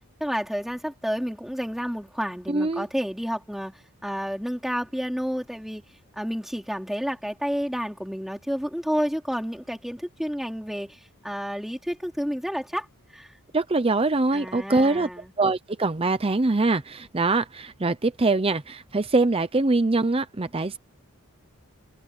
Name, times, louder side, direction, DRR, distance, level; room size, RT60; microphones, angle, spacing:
voice 1, 0.2-5.8 6.2-12.9 13.1-13.3 14.3-15.3, equal, ahead, 4.0 m, -30 dB
voice 2, 2.5-2.8 13.5-15.1 15.4-20.8, right 3 dB, 25° right, 0.6 m, -23 dB
head